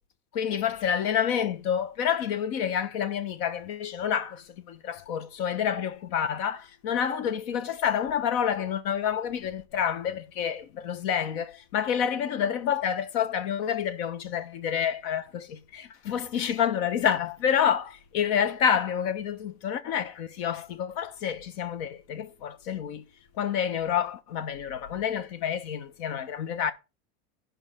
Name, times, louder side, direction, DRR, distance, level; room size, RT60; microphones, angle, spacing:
voice 1, 0.3-23.0 23.4-26.7, left 8 dB, 65° left, 1.3 m, -28 dB
15.0 x 5.4 x 3.7 m
supercardioid pair, 120°, 33 cm